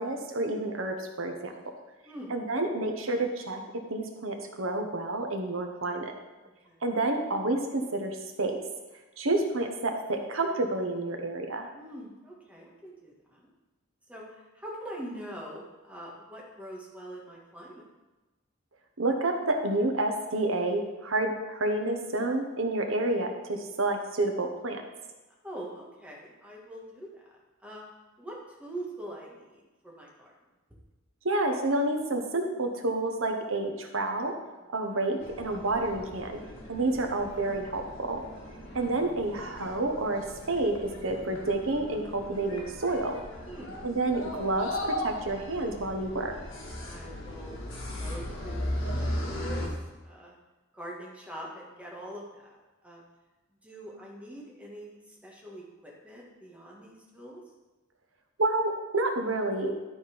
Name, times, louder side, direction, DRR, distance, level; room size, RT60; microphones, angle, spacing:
voice 1, 0.0-1.5 2.3-3.6 3.9-6.1 6.8-8.6 9.2-11.7 19.0-24.8 31.2-34.3 34.7-36.4 36.7-38.2 38.7-43.2 43.8-46.3 58.4-59.7, right 2 dB, 90° right, 4 dB, 1.2 m, -29 dB
voice 2, 6.4-6.8 11.7-13.5 14.1-17.8 25.4-27.8 28.2-30.3 36.7-37.0 38.5-38.9 43.5-43.8 46.8-47.6 48.0-49.8 50.0-50.3 50.7-52.6 52.8-53.0 53.6-57.4, right 1 dB, 5° right, -3 dB, 1.7 m, -44 dB
sound 1, 35.2-49.7, left 1 dB, 65° left, 2.1 m, -37 dB
11.5 x 4.3 x 5.1 m, 1.1 s
head